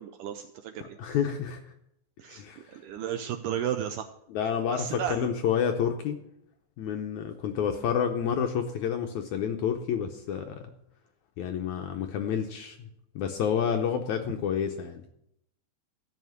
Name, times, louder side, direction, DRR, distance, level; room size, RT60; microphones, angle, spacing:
voice 1, 0.0-1.2 2.2-2.4 2.7-4.1 4.7-5.3, right 10 dB, 80° right, 6 dB, 1.9 m, -34 dB
voice 2, 0.8-1.6 2.3-2.8 4.3-6.2 6.8-10.6 11.4-12.8 13.2-15.0, left 8 dB, 75° left, 5 dB, 1.7 m, -29 dB
14.5 x 5.7 x 9.3 m, 0.79 s
omnidirectional pair, 4.2 m